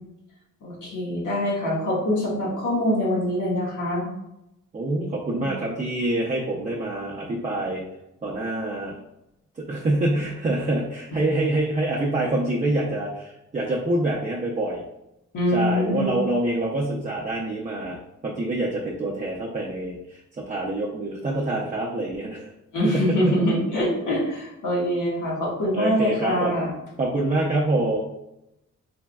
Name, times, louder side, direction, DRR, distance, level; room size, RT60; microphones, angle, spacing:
voice 1, 0.6-4.1 5.3-5.5 15.3-16.1 22.7-26.7, left 1 dB, 90° left, -5 dB, 1.3 m, -24 dB
voice 2, 4.7-7.9 8.2-9.0 9.6-14.8 15.5-22.5 22.8-23.3 25.7-26.5 27.0-28.0, right 2 dB, 25° right, -4 dB, 0.5 m, -26 dB
3.8 x 3.4 x 2.2 m, 0.87 s
wide cardioid pair, 130°, 30 cm